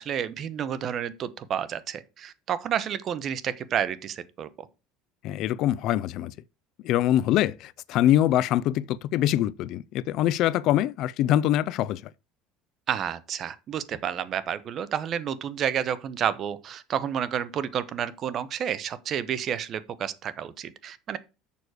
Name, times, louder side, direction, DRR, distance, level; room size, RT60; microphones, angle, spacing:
voice 1, 0.0-4.7 12.9-21.2, right 9 dB, 40° right, 0.8 m, -30 dB
voice 2, 5.2-6.3 6.8-12.0, left 12 dB, 55° left, 0.4 m, -24 dB
6.9 x 6.3 x 4.8 m
cardioid pair, 125°, 0 cm